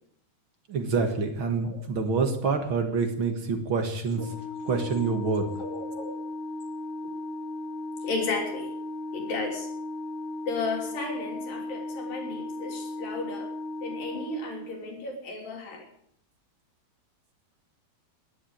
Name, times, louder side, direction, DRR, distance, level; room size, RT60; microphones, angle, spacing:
voice 1, 0.7-4.2 4.6-5.5, right 4 dB, 45° right, 5 dB, 1.8 m, -27 dB
Organ, 4.1-15.0, left 2 dB, 15° right, 2.8 m, -36 dB
voice 2, 5.6-6.1 8.0-8.7 9.1-9.7 10.5-13.5 13.8-15.9, left 3 dB, 70° left, 2 dB, 5.0 m, -34 dB
13.5 x 11.0 x 8.9 m, 0.67 s
omnidirectional pair, 4.3 m